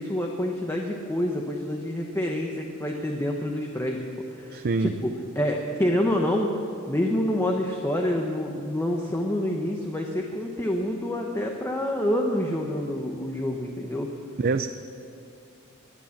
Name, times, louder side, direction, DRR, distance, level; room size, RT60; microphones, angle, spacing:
voice 1, 0.0-4.0 4.4-6.5 6.9-14.1, left 1 dB, 10° left, 1 dB, 0.9 m, -27 dB
voice 2, 4.5-4.9 14.4-14.7, right 4 dB, 45° right, 9 dB, 0.5 m, -24 dB
21.0 x 9.1 x 7.2 m, 2.5 s
head